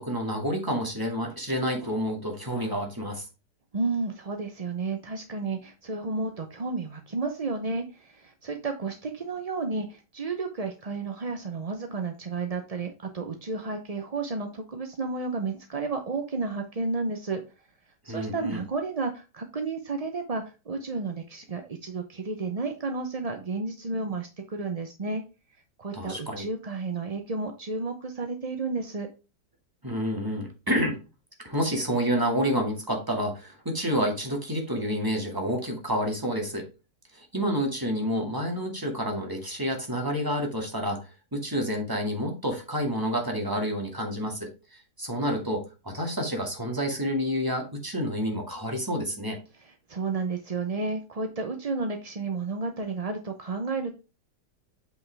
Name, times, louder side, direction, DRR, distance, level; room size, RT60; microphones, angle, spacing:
voice 1, 0.0-3.3 18.1-18.6 25.9-26.5 29.8-31.0 31.4-36.7 37.1-49.4, equal, 10° right, 1 dB, 2.1 m, -29 dB
voice 2, 3.7-17.4 18.0-25.2 25.8-29.1 49.6-53.9, right 3 dB, 35° right, 4 dB, 0.6 m, -32 dB
7.9 x 5.7 x 3.4 m, 0.29 s
omnidirectional pair, 1.8 m